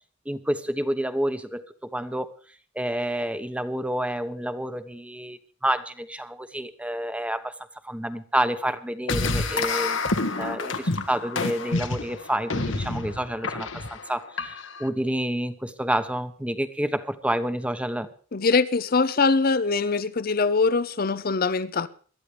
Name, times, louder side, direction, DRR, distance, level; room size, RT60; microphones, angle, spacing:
voice 1, 0.3-2.3 2.7-7.5 7.8-10.0 10.3-18.1, right 1 dB, 5° right, 1.0 m, -29 dB
sound 1, 9.1-14.9, left 3 dB, 75° left, 1.4 m, -28 dB
voice 2, 18.3-21.9, left 4 dB, 50° left, 0.7 m, -22 dB
21.5 x 13.0 x 3.4 m
head